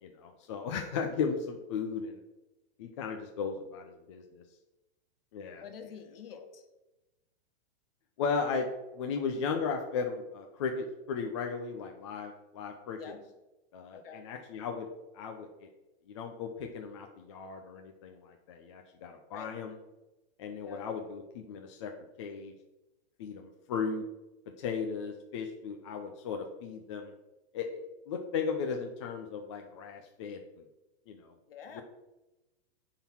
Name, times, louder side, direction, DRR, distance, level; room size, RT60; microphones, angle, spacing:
voice 1, 0.0-2.2 2.8-4.4 5.3-5.6 6.3-6.4 8.2-13.0 13.7-14.9 15.1-15.7 16.1-19.7 20.4-21.9 22.2-22.5 23.2-24.0 24.6-27.1 27.5-30.6 31.1-31.3, left 5 dB, 30° left, 3 dB, 0.6 m, -36 dB
voice 2, 5.6-6.6 13.0-13.2 13.9-14.2 19.3-19.5 20.6-20.8 31.5-31.8, left 7 dB, 55° left, 5 dB, 1.6 m, -47 dB
10.5 x 3.9 x 7.1 m, 1.0 s
supercardioid pair, 175°, 33 cm